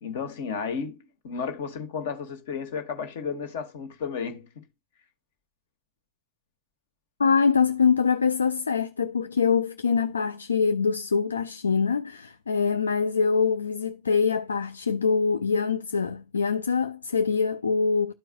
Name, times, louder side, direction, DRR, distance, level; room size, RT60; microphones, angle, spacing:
voice 1, 0.0-4.6, left 6 dB, 55° left, 1.2 m, -33 dB
voice 2, 7.2-18.1, left 5 dB, 75° left, 0.3 m, -24 dB
12.5 x 4.5 x 2.2 m
figure-of-eight pair, 90°, 0 cm